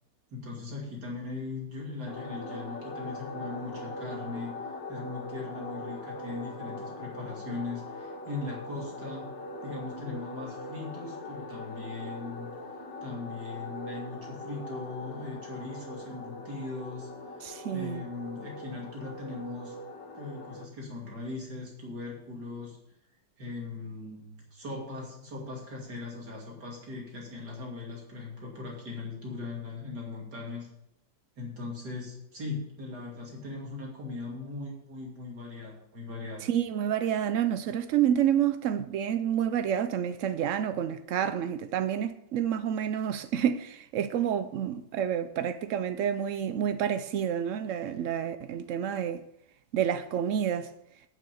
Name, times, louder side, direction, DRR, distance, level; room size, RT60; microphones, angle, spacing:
voice 1, 0.3-4.5 4.9-12.5 13.0-17.1 17.7-19.7 20.1-22.8 23.4-30.7 31.4-36.5, left 3 dB, 60° right, 3.3 m, -39 dB
sound 1, 2.1-20.6, left 2 dB, 70° left, 1.9 m, -41 dB
voice 2, 17.4-18.0 36.5-49.2 49.7-50.7, right 9 dB, 90° right, 0.6 m, -29 dB
9.3 x 7.1 x 6.9 m
omnidirectional pair, 2.0 m